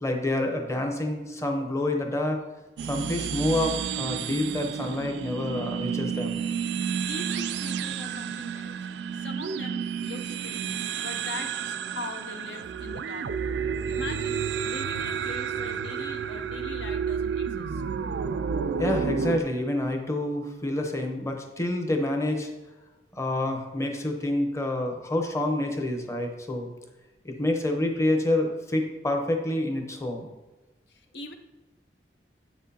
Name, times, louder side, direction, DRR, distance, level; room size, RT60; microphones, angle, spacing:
voice 1, 0.0-2.4 2.9-6.4 18.8-22.5 23.1-26.7 27.2-30.3, left 1 dB, 15° left, 3 dB, 0.8 m, -28 dB
sound 1, 2.8-19.4, right 7 dB, 70° right, 0.3 m, -31 dB
voice 2, 7.0-8.8 9.1-17.8 30.9-31.3, left 3 dB, 70° left, 6 dB, 0.6 m, -41 dB
8.0 x 6.1 x 2.8 m, 1.1 s
head